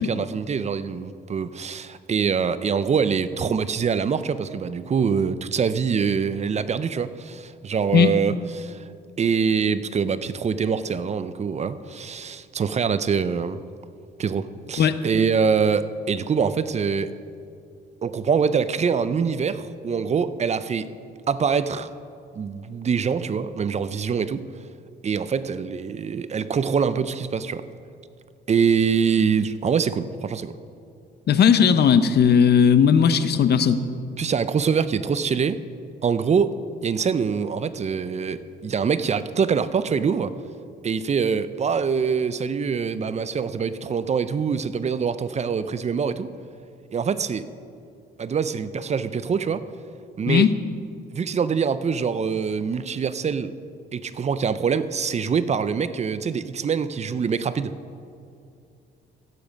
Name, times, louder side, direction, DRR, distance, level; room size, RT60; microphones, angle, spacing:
voice 1, 0.0-8.8 9.2-13.6 14.2-17.1 18.0-20.9 21.3-21.9 22.3-24.5 25.0-27.6 28.5-30.5 34.2-35.6 36.0-36.5 36.8-40.3 40.8-46.3 46.9-47.4 48.2-49.6 50.2-50.5 51.1-53.5 53.9-57.8, right 6 dB, 35° right, 14 dB, 0.5 m, -24 dB
voice 2, 31.3-33.8 50.3-50.5, left 7 dB, 55° left, 12 dB, 0.7 m, -17 dB
15.5 x 7.1 x 5.2 m, 2.4 s
cardioid pair, 90°, 20 cm